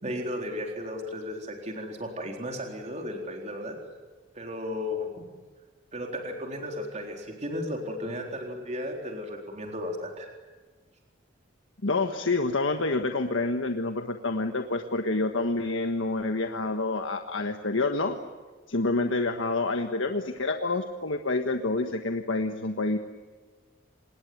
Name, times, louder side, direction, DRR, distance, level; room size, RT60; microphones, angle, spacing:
voice 1, 0.0-3.8 4.3-5.2 5.9-10.3, left 1 dB, 35° right, 1 dB, 4.0 m, -34 dB
voice 2, 11.8-18.2 18.7-23.0, left 2 dB, 85° left, 5 dB, 1.5 m, -28 dB
27.0 x 20.5 x 9.5 m, 1.4 s
head